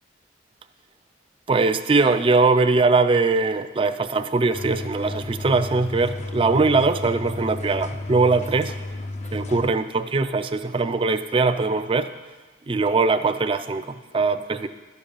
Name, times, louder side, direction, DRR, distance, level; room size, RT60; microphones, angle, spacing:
voice 1, 1.5-8.7 9.3-12.1 12.7-14.7, right 3 dB, 30° right, 10 dB, 0.4 m, -21 dB
sound 1, 4.5-9.7, left 2 dB, 40° left, 0.5 m, -33 dB
12.0 x 5.2 x 7.1 m, 1.3 s
head